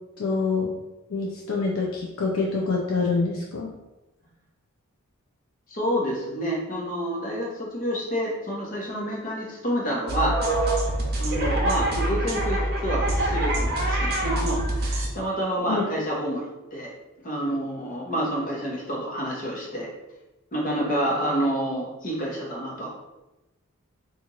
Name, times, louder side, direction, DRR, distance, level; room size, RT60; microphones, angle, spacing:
voice 1, 0.2-0.7 1.1-3.7 15.7-15.8, left 4 dB, 70° left, -2 dB, 0.5 m, -26 dB
voice 2, 5.7-10.4 11.2-16.9 17.2-19.9 20.5-22.9, equal, 40° left, -3 dB, 1.0 m, -28 dB
sound 1, 10.1-15.1, right 1 dB, 45° right, 0.7 m, -25 dB
3.0 x 2.5 x 3.9 m, 0.99 s
head